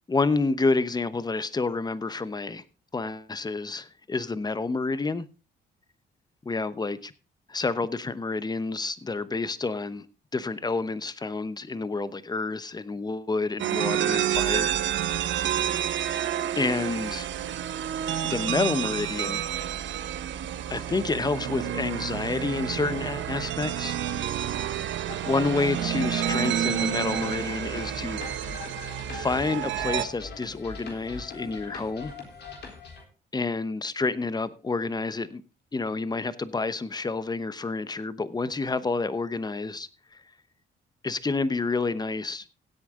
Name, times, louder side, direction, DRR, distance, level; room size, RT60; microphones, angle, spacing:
voice 1, 0.0-2.6 2.9-5.3 6.4-7.1 7.5-10.0 10.3-15.4 16.6-17.3 18.2-19.4 20.7-24.0 25.2-28.5 29.1-32.1 33.3-35.4 35.7-39.9 41.0-42.4, left 3 dB, 20° left, 0.9 m, -29 dB
sound 1, 13.6-30.1, right 10 dB, 70° right, 1.0 m, -29 dB
sound 2, 25.1-33.0, left 5 dB, 60° left, 3.9 m, -42 dB
16.5 x 8.5 x 3.8 m
cardioid pair, 90°, 20 cm